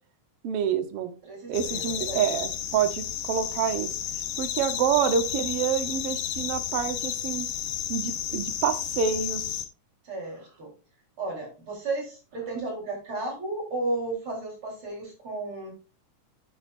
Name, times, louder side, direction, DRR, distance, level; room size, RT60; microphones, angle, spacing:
voice 1, 0.4-1.1 1.5-3.9 4.4-7.5 7.9-9.4, right 8 dB, 60° right, 9 dB, 1.7 m, -27 dB
voice 2, 1.2-2.2 10.0-10.7 11.2-15.7, right 2 dB, 40° right, -1 dB, 4.7 m, -33 dB
sound 1, 1.5-9.7, left 10 dB, 85° left, 2.7 m, -32 dB
9.8 x 8.7 x 2.6 m, 0.34 s
omnidirectional pair, 3.7 m